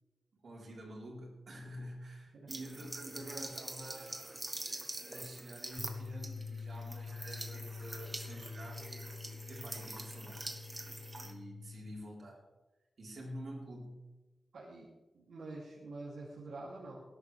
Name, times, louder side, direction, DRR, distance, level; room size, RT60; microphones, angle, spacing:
voice 1, 0.3-4.3 5.0-8.9 9.5-10.6 11.2-12.4 13.0-14.0, right 1 dB, 55° right, -4 dB, 4.1 m, -48 dB
sound 1, 2.5-11.3, right 2 dB, 20° right, 1.4 m, -45 dB
sound 2, 5.8-12.0, left 5 dB, 75° left, 0.4 m, -46 dB
voice 2, 14.5-17.0, right 2 dB, 85° right, -5 dB, 2.8 m, -47 dB
19.5 x 11.0 x 3.4 m, 1.1 s
wide cardioid pair, 140°, 0 cm